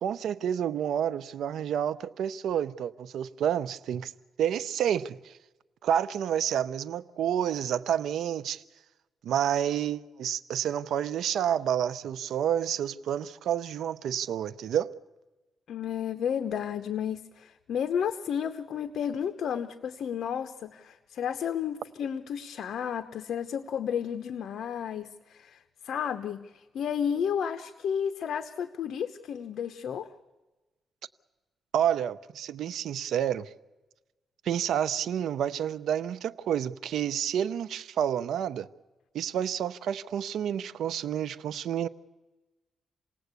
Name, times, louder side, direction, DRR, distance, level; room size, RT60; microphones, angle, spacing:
voice 1, 0.0-4.1 4.4-5.4 5.8-8.6 9.2-14.9 31.7-33.5 34.4-38.7 39.1-41.9, right 9 dB, 85° right, 0.7 m, -29 dB
voice 2, 15.7-30.1, left 8 dB, 70° left, 0.9 m, -32 dB
28.0 x 18.5 x 8.3 m
cardioid pair, 130°, 0 cm